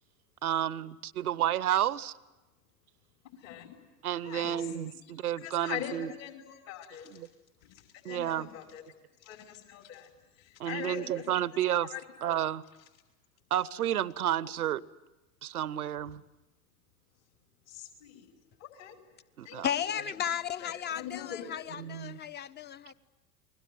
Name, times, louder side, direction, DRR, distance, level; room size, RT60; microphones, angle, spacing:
voice 1, 0.4-2.1 4.0-6.1 7.1-7.3 8.0-8.5 10.6-11.9 12.2-12.6 13.5-14.8 15.4-16.2 19.4-19.7 21.8-22.2, right 11 dB, 70° right, 1.0 m, -31 dB
voice 2, 3.4-3.7 4.2-4.7 5.4-7.1 7.6-8.8 9.2-10.1 10.4-11.3 11.8-12.1 17.7-18.3 18.6-19.0 19.4-19.9 20.2-20.3 20.6-21.6, left 10 dB, 55° left, 5.3 m, -42 dB
voice 3, 19.6-22.9, left 9 dB, 20° left, 1.0 m, -34 dB
29.5 x 21.5 x 9.4 m
figure-of-eight pair, 85°, 46 cm